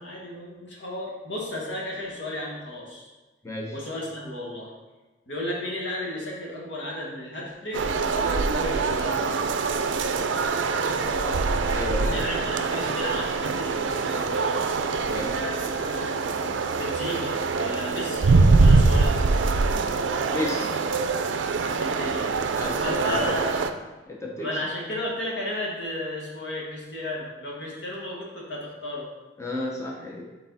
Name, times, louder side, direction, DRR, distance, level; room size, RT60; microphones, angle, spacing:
voice 1, 0.0-3.1 3.7-4.7 5.3-9.2 10.6-11.5 12.0-14.7 15.0-16.1 16.7-19.2 21.6-23.7 24.4-29.1, left 1 dB, 70° left, -4 dB, 1.7 m, -34 dB
voice 2, 3.4-3.8 11.7-12.2 15.0-15.4 20.3-20.7 22.5-23.4 24.1-24.5 29.4-30.2, left 2 dB, 15° left, -2 dB, 0.6 m, -32 dB
sound 1, 7.7-23.7, right 4 dB, 85° right, 0.4 m, -24 dB
6.4 x 4.0 x 4.1 m, 1.2 s
head